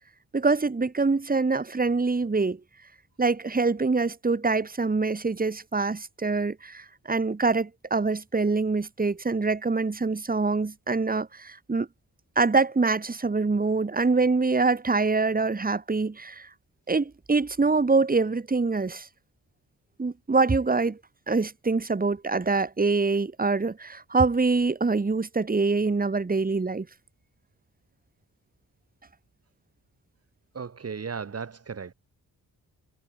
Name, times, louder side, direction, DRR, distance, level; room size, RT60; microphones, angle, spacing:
voice 1, 0.3-2.6 3.2-11.9 12.4-16.5 16.9-19.1 20.0-21.0 21.3-26.9, right 3 dB, 25° right, 2.9 m, -25 dB
voice 2, 30.5-31.9, right 5 dB, 40° right, 2.7 m, -35 dB
wide cardioid pair, 120°, 37 cm